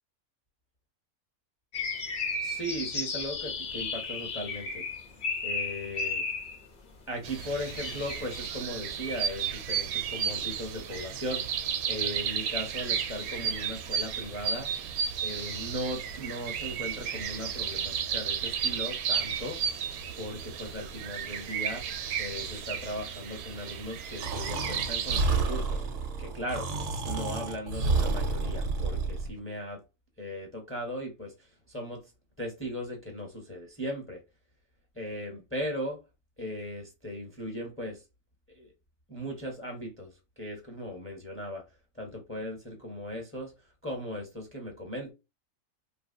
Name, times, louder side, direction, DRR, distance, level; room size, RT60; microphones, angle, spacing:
sound 1, 1.7-6.6 7.4-8.5, left 4 dB, 45° left, 0.7 m, -34 dB
voice 1, 2.4-4.8 5.4-6.2 7.1-11.4 11.9-14.7 15.2-19.6 20.2-21.9 22.2-25.8 26.2-26.7 27.0-29.8 30.2-31.3 31.7-32.0 32.4-34.2 34.9-36.0 36.4-38.0 38.5-38.7 39.1-40.1 40.4-41.6 41.9-43.5 43.8-45.1, equal, 10° left, 0.8 m, -37 dB
sound 2, 7.2-25.2, right 7 dB, 90° right, 1.0 m, -33 dB
Breathing, 24.2-29.3, right 3 dB, 65° right, 1.0 m, -30 dB
3.1 x 2.5 x 2.5 m
omnidirectional pair, 1.5 m